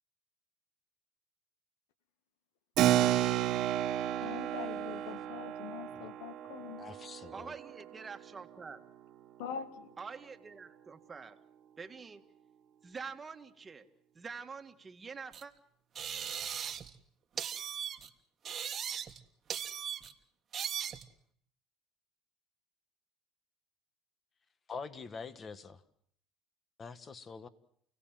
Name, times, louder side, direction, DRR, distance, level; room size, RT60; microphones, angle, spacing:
Keyboard (musical), 2.8-8.8, right 12 dB, 60° right, 1.5 m, -32 dB
voice 1, 4.2-6.9 9.4-9.9, left 7 dB, 85° left, 12 dB, 1.7 m, -43 dB
voice 2, 6.8-7.5 24.7-25.8 26.8-27.5, left 5 dB, 30° left, 13 dB, 1.6 m, -45 dB
voice 3, 7.3-8.8 10.0-11.4 11.8-12.2 12.8-13.9 14.2-15.5, right 5 dB, 25° right, 6 dB, 1.8 m, -46 dB
sound 1, 15.3-15.4 15.9-17.0 17.4-18.1 18.4-19.2 19.5-20.1 20.5-21.1, right 8 dB, 40° right, 1.5 m, -38 dB
29.5 x 17.0 x 7.6 m, 0.66 s
supercardioid pair, 100°, 0 cm